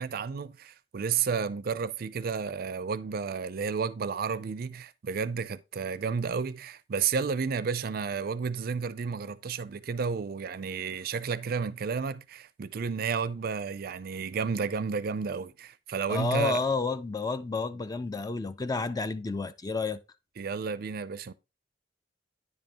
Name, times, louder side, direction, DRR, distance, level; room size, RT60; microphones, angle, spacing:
voice 1, 0.0-16.6 20.4-21.3, right 5 dB, 55° right, 0.4 m, -32 dB
voice 2, 16.1-20.0, left 3 dB, 20° left, 0.4 m, -30 dB
9.7 x 5.3 x 2.8 m
head